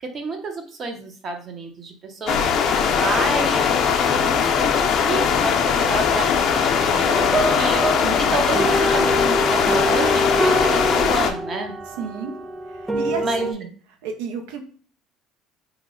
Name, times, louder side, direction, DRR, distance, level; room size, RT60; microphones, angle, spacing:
voice 1, 0.0-2.4 2.7-7.8 8.2-11.7 13.2-13.5, right 3 dB, 45° right, 4 dB, 0.7 m, -30 dB
sound 1, 2.3-11.3, left 7 dB, 55° left, 0.4 m, -20 dB
sound 2, 7.1-13.5, right 1 dB, 10° right, 0.4 m, -25 dB
voice 2, 8.0-8.4 12.0-12.3 12.7-13.7 14.0-14.6, right 5 dB, 90° right, 4 dB, 0.5 m, -31 dB
2.9 x 2.0 x 3.6 m, 0.44 s
supercardioid pair, 95°, 0 cm